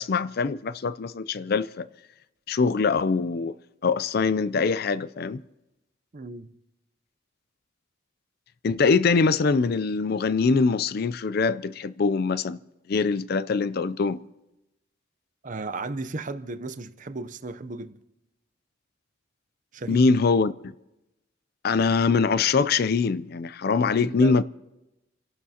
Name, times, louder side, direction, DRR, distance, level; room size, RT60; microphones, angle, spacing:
voice 1, 0.0-1.9 2.5-3.5 3.8-5.4 8.6-12.6 12.9-14.2 19.9-20.7 21.6-24.4, left 4 dB, 50° left, 0.4 m, -23 dB
voice 2, 6.1-6.5 15.4-17.9 19.7-20.1 23.9-24.4, right 3 dB, 40° right, 0.6 m, -35 dB
29.5 x 12.0 x 2.8 m
head